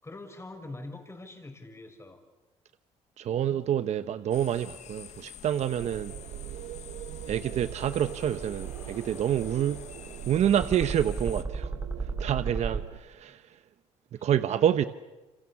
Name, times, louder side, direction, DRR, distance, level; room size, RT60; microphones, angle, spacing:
voice 1, 0.0-2.2 12.2-12.6 14.1-14.3, left 2 dB, 20° left, 6 dB, 5.9 m, -44 dB
voice 2, 3.2-6.1 7.3-9.8 10.3-11.7 12.0-13.6 14.1-14.8, right 10 dB, 60° right, 11 dB, 1.0 m, -28 dB
sound 1, 4.3-11.4, left 10 dB, 60° left, 1.4 m, -48 dB
sound 2, 5.7-13.0, right 12 dB, 80° right, 1.2 m, -41 dB
sound 3, 7.8-12.8, right 3 dB, 15° right, 2.5 m, -36 dB
29.0 x 26.5 x 7.3 m, 1.1 s
cardioid pair, 85°, 13 cm